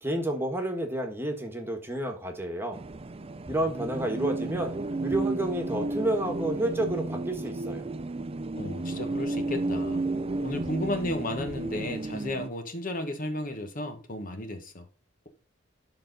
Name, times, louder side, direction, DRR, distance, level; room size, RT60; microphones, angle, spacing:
voice 1, 0.0-2.8 3.5-7.8, right 1 dB, 10° right, 1.6 m, -30 dB
sound 1, 2.7-12.5, right 2 dB, 30° right, 0.5 m, -32 dB
voice 2, 8.6-10.0 10.4-14.8, left 1 dB, 40° left, 1.2 m, -33 dB
11.5 x 3.9 x 4.0 m
head